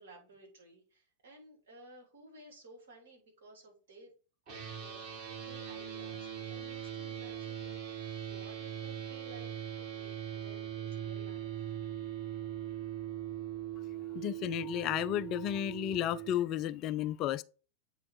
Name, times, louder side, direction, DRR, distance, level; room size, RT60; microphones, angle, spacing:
voice 1, 0.0-4.1 4.5-11.5, right 2 dB, 60° right, 2.9 m, -56 dB
sound 1, 4.5-16.3, right 10 dB, 40° right, 3.1 m, -41 dB
voice 2, 14.1-17.4, left 12 dB, 35° left, 0.3 m, -33 dB
8.4 x 2.9 x 4.5 m
figure-of-eight pair, 90°, 0 cm